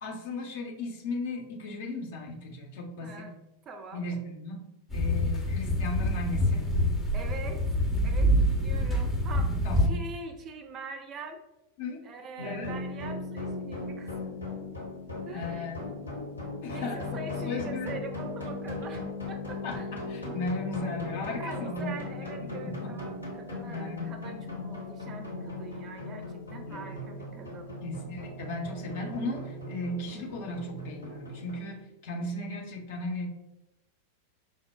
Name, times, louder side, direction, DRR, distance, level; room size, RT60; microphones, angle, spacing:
voice 1, 0.0-3.3 3.9-4.6 4.9-6.7 9.6-10.0 11.8-12.0 12.4-12.7 15.3-16.1 16.6-17.9 19.6-21.9 22.2-23.0 23.7-24.6 26.7-27.0 27.8-33.3, left 2 dB, 55° left, 0 dB, 0.7 m, -36 dB
voice 2, 3.0-3.3 3.7-4.1 7.1-11.4 12.0-14.2 15.3-15.7 16.7-19.9 21.3-27.8, right 3 dB, 30° right, 6 dB, 0.4 m, -43 dB
sound 1, 4.9-9.9, equal, 10° left, 0.6 m, -26 dB
sound 2, 12.4-31.6, left 2 dB, 85° left, 1.1 m, -38 dB
5.3 x 2.1 x 2.2 m, 0.89 s
figure-of-eight pair, 90°, 0 cm